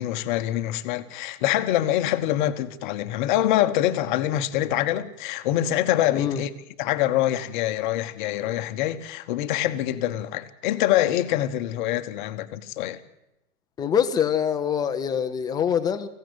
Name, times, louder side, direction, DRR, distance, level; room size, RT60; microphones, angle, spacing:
voice 1, 0.0-6.5 6.8-13.0, left 13 dB, 30° left, 1.2 m, -25 dB
voice 2, 13.8-16.1, left 8 dB, 10° left, 0.7 m, -24 dB
24.5 x 16.0 x 8.0 m
hypercardioid pair, 125°, 46 cm